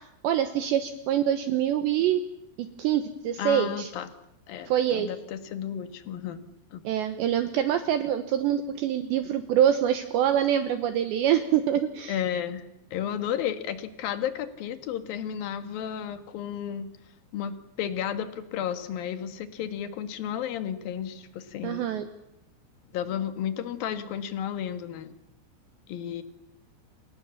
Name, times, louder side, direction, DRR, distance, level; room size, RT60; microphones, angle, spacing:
voice 1, 0.2-2.2 2.6-3.9 4.7-5.1 6.8-12.2 21.6-22.1, right 10 dB, 70° right, 8 dB, 2.9 m, -25 dB
voice 2, 3.4-4.1 4.5-6.4 6.7-6.8 12.1-12.6 12.9-16.9 17.3-21.9 22.9-25.1 25.9-26.2, left 9 dB, 60° left, 9 dB, 2.8 m, -33 dB
29.5 x 27.5 x 7.3 m, 0.85 s
omnidirectional pair, 6.0 m